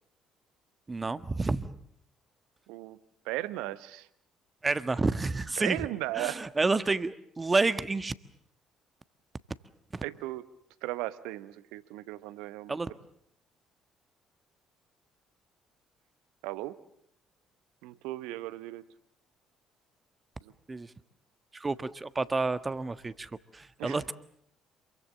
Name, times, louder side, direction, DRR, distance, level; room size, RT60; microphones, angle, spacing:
voice 1, 0.9-1.7 4.6-5.8 6.1-8.1 9.9-10.0 12.7-12.9 20.7-20.9 21.5-24.1, right 3 dB, 25° right, 13 dB, 1.4 m, -29 dB
voice 2, 3.2-4.1 5.6-6.4 10.0-10.4 10.8-12.8 16.4-16.8 17.8-18.9 23.8-24.0, right 17 dB, 65° right, 16 dB, 1.0 m, -36 dB
27.0 x 23.5 x 7.7 m, 0.71 s
figure-of-eight pair, 45°, 0 cm